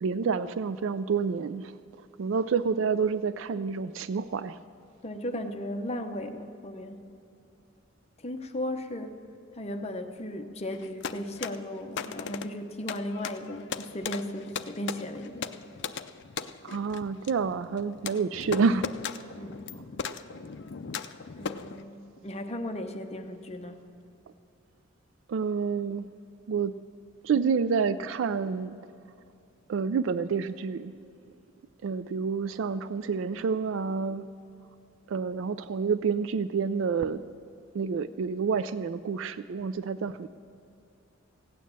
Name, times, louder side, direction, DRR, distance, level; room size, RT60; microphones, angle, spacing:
voice 1, 0.0-1.7 2.2-4.6 16.6-18.9 19.1-19.2 25.3-26.1 26.5-26.7 27.2-28.8 29.7-30.9 31.8-34.3 35.1-37.2 37.7-40.3, right 5 dB, 70° right, 13 dB, 0.3 m, -28 dB
voice 2, 5.0-7.1 8.2-9.2 9.5-15.5 18.1-18.2 19.3-19.7 21.4-23.8, left 1 dB, 30° left, 6 dB, 0.8 m, -36 dB
sound 1, 10.7-21.8, left 6 dB, 60° left, 0.5 m, -38 dB
16.0 x 9.3 x 7.4 m, 2.6 s
head